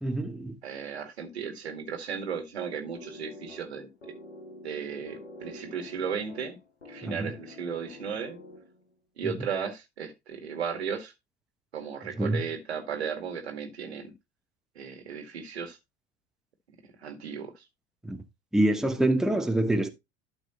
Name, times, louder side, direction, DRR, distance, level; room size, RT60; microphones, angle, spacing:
voice 1, 0.0-0.6 7.0-7.3 9.2-9.3 12.2-12.4 18.0-18.2 18.5-19.9, right 1 dB, ahead, 1.0 m, -26 dB
voice 2, 0.6-3.9 4.6-6.6 6.9-8.4 9.2-11.1 11.7-14.1 14.8-15.8 17.0-17.6, right 6 dB, 75° right, 1.8 m, -35 dB
sound 1, 3.0-8.9, left 1 dB, 85° left, 1.7 m, -47 dB
12.0 x 5.6 x 3.0 m
figure-of-eight pair, 70°, 32 cm